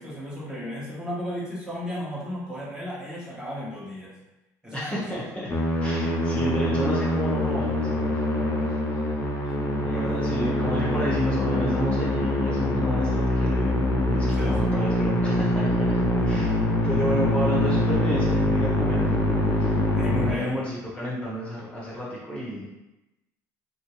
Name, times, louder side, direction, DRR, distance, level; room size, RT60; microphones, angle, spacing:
voice 1, 0.0-4.1 4.6-5.0 9.8-10.1 14.4-15.2 15.6-15.7 16.1-16.6 19.9-20.6, equal, 10° right, -7 dB, 1.2 m, -35 dB
voice 2, 4.7-5.5 5.8-9.0 9.8-19.0 19.6-19.7 20.1-22.7, equal, 15° left, -6 dB, 1.1 m, -32 dB
Musical instrument, 5.5-20.3, left 1 dB, 30° left, 0.7 m, -24 dB
2.8 x 2.6 x 3.1 m, 0.98 s
hypercardioid pair, 70°, 9 cm